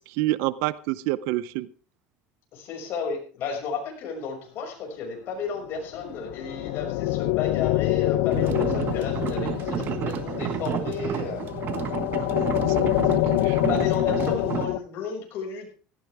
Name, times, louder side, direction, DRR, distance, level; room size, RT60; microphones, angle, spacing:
voice 1, 0.1-1.7 12.2-13.0 13.4-13.8, right 17 dB, 75° right, 18 dB, 0.6 m, -28 dB
voice 2, 2.5-11.5 13.7-15.7, left 5 dB, 55° left, 2 dB, 6.1 m, -33 dB
sound 1, 5.9-14.8, left 19 dB, 85° left, 0.6 m, -26 dB
sound 2, 8.3-14.7, right 10 dB, 45° right, 1.4 m, -31 dB
17.0 x 14.0 x 3.5 m, 0.38 s
supercardioid pair, 120°, 5 cm